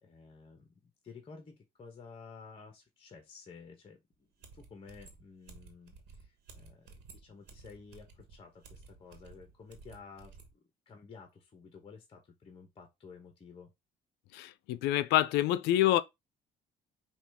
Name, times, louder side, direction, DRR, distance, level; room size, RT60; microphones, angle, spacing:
voice 1, 0.0-4.3 4.5-13.7, left 5 dB, 30° left, 1.0 m, -53 dB
sound 1, 4.1-4.2 4.4-10.5, right 4 dB, 80° right, 1.3 m, -54 dB
voice 2, 14.3-16.0, left 13 dB, 90° left, 0.5 m, -27 dB
5.9 x 2.4 x 3.5 m
cardioid pair, 110°, 17 cm